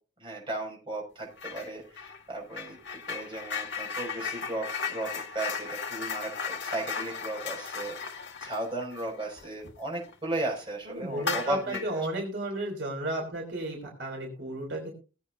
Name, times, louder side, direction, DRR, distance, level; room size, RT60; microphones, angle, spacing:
voice 1, 0.2-2.8 3.1-7.9 8.4-11.8, right 1 dB, 25° right, -1 dB, 6.3 m, -35 dB
sound 1, 1.4-1.7 2.0-10.1 10.5-10.6 11.1-12.0, left 5 dB, 60° left, 1.7 m, -36 dB
voice 2, 10.9-14.9, right 1 dB, 60° right, 0 dB, 3.5 m, -33 dB
20.5 x 8.7 x 2.7 m, 0.34 s
head